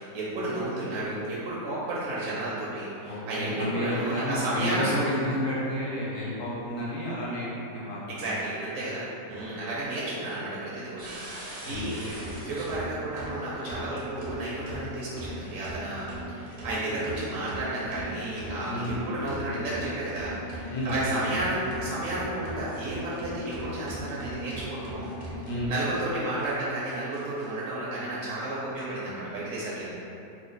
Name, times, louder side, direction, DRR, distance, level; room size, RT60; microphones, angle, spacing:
voice 1, 0.0-4.9 8.1-25.2 25.4-29.9, right 2 dB, 70° right, -7 dB, 0.9 m, -32 dB
voice 2, 3.0-8.3 9.3-9.4 11.6-12.0 18.7-19.0 20.7-21.2 25.4-25.7, left 1 dB, 65° left, -7 dB, 1.0 m, -31 dB
sound 1, 11.0-26.0 26.4-26.5 26.9-27.4, equal, 55° right, 0.5 m, -39 dB
2.9 x 2.1 x 3.8 m, 3.0 s
omnidirectional pair, 1.6 m